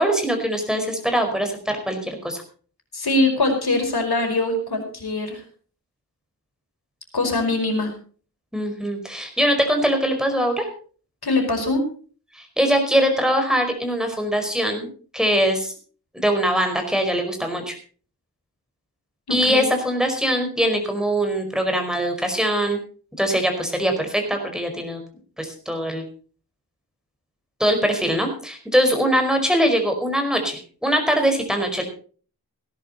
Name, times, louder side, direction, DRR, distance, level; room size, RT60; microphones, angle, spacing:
voice 1, 0.0-2.4 8.5-10.7 12.3-14.9 15.1-15.7 16.1-17.7 19.3-22.8 23.2-25.0 25.4-26.0 27.6-31.8, equal, ahead, 4 dB, 5.0 m, -22 dB
voice 2, 2.9-5.4 7.1-7.9 11.2-11.8 19.3-19.7, left 2 dB, 70° left, 4 dB, 5.0 m, -22 dB
18.0 x 11.0 x 4.3 m, 0.42 s
wide cardioid pair, 65°, 39 cm